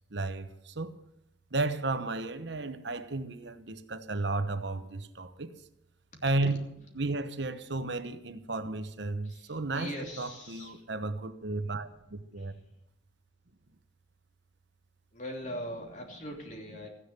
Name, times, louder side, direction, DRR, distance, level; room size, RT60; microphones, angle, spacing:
voice 1, 0.1-0.9 1.5-5.5 6.2-6.6 6.9-12.6, right 2 dB, 65° right, 1.0 m, -33 dB
voice 2, 9.2-10.8 12.4-12.5 15.1-16.9, equal, 40° left, 3.0 m, -41 dB
15.0 x 10.0 x 6.7 m
head